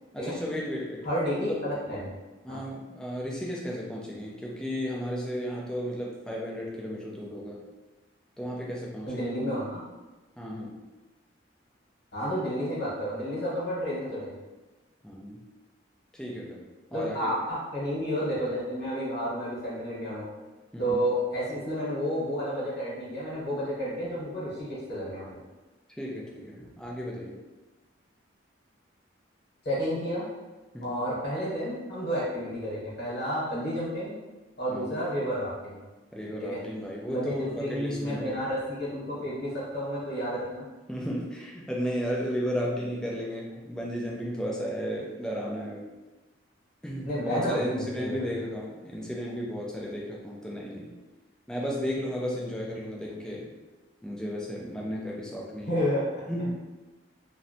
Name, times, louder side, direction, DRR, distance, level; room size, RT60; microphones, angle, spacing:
voice 1, 0.1-1.0 1.5-1.6 2.4-7.6 8.4-9.2 10.4-10.8 15.0-15.4 16.1-16.6 16.9-17.3 20.7-21.0 26.0-27.4 30.7-31.0 34.7-35.0 36.1-38.4 40.9-45.8 46.8-50.9 51.5-53.5 54.0-55.7 56.3-56.6, equal, 5° left, -3 dB, 0.3 m, -34 dB
voice 2, 1.0-2.1 2.5-2.6 9.0-9.8 12.1-14.3 16.9-20.3 20.8-25.4 29.6-30.3 30.8-34.2 34.6-35.8 36.4-36.6 37.1-40.6 47.0-48.3 53.0-53.2 55.6-56.2, equal, 55° left, -7 dB, 1.0 m, -31 dB
2.6 x 2.1 x 2.6 m, 1.2 s
head